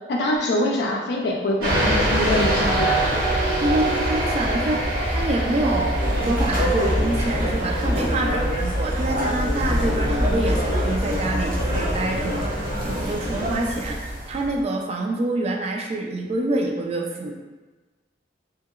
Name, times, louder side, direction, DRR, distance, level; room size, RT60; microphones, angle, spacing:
voice 1, 0.1-3.0, left 1 dB, 65° left, -1 dB, 0.3 m, -24 dB
sound 1, 1.6-14.6, right 1 dB, 55° right, 0.7 m, -26 dB
voice 2, 3.6-17.3, right 1 dB, 35° right, 2 dB, 0.3 m, -26 dB
sound 2, 5.0-12.6, left 1 dB, 15° left, 0.6 m, -28 dB
sound 3, 6.0-13.5, equal, 85° right, 1.4 m, -28 dB
2.8 x 2.8 x 2.4 m, 1.2 s
head